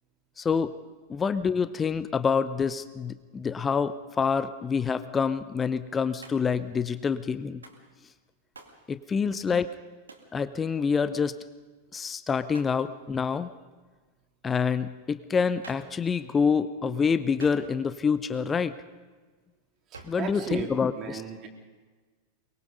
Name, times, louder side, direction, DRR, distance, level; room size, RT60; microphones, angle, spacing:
voice 1, 0.4-0.7 1.1-7.6 8.9-9.7 10.3-11.4 11.9-13.5 14.4-18.8 20.0-21.2, left 6 dB, 20° left, 14 dB, 0.7 m, -27 dB
Hands, 6.2-6.6 7.6-7.9 8.5-8.8 10.1-10.3 12.5-12.8 15.6-16.0 17.4-18.0 19.9-20.3, right 3 dB, 75° right, 2.3 m, -48 dB
voice 2, 19.9-20.7 21.0-21.5, right 7 dB, 30° right, 0 dB, 3.6 m, -36 dB
23.5 x 22.5 x 5.4 m, 1.4 s
figure-of-eight pair, 90°, 0 cm